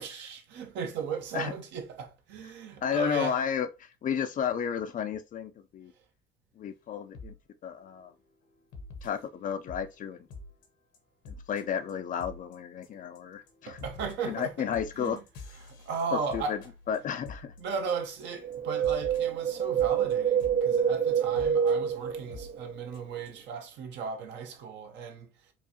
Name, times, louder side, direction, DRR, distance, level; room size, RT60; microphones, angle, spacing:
voice 1, 0.0-3.4 13.7-15.3 15.5-16.6 17.6-25.5, right 5 dB, 65° right, 1.0 m, -36 dB
voice 2, 2.8-5.9 6.6-7.3 7.6-8.1 9.0-10.2 11.3-13.8 14.3-15.2 16.1-16.6 16.9-17.5, left 8 dB, 45° left, 0.5 m, -32 dB
sound 1, 7.1-7.4 7.8-8.0 8.7-9.9 10.3-10.7 10.9-11.0 11.2-11.6 11.9-12.0 12.2-12.5 12.8-13.2 13.5-18.2 18.5-18.6 18.8-20.6 21.4-21.7 22.3-22.5 22.9-23.0 23.3-23.4, left 3 dB, 70° left, 1.1 m, -46 dB
Wind, 18.4-22.8 23.0-23.1, right 8 dB, 40° right, 0.5 m, -27 dB
4.5 x 2.4 x 2.8 m
supercardioid pair, 90°, 20 cm